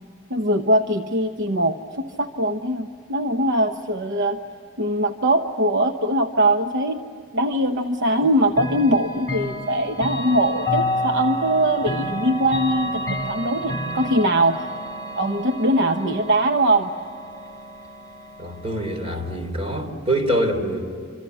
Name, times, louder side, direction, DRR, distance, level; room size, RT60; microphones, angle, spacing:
voice 1, 0.3-4.4 4.8-7.0 7.3-14.7 15.2-16.9, right 1 dB, 55° right, 1.0 m, -21 dB
Chime / Clock, 8.5-19.3, left 1 dB, 20° left, 4.0 m, -30 dB
voice 2, 18.4-20.8, right 1 dB, 30° right, 3.5 m, -24 dB
26.5 x 26.0 x 8.1 m
head